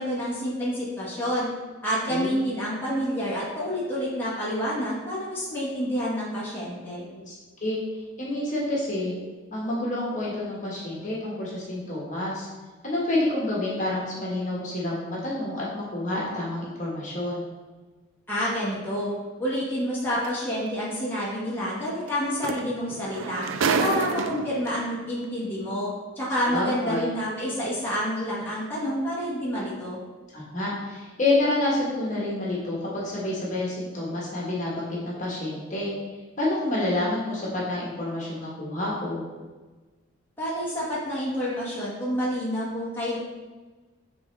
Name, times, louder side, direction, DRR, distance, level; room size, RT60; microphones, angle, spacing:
voice 1, 0.0-1.5 1.8-7.0 18.3-19.1 19.4-23.4 23.8-25.9 26.1-30.0 40.4-43.2, equal, 10° left, -8 dB, 1.5 m, -28 dB
voice 2, 8.2-9.1 9.5-12.5 12.8-17.4 26.5-27.1 30.3-35.9 36.4-39.2, left 2 dB, 40° left, -5 dB, 1.4 m, -28 dB
sound 1, 20.2-20.4 22.1-22.2 22.4-24.7 25.6-25.7, right 5 dB, 85° right, 0.4 m, -27 dB
8.3 x 3.7 x 3.4 m, 1.3 s
head